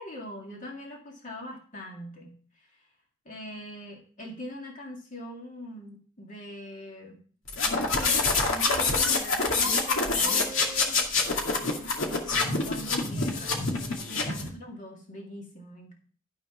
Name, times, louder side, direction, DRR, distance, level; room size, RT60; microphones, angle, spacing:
voice 1, 0.0-2.7 3.3-7.2 7.7-11.0 11.5-13.6 14.1-15.9, left 1 dB, 40° left, -1 dB, 2.1 m, -42 dB
sound 1, 7.5-14.5, left 3 dB, 65° left, 2.3 m, -26 dB
13.0 x 4.5 x 5.7 m, 0.43 s
head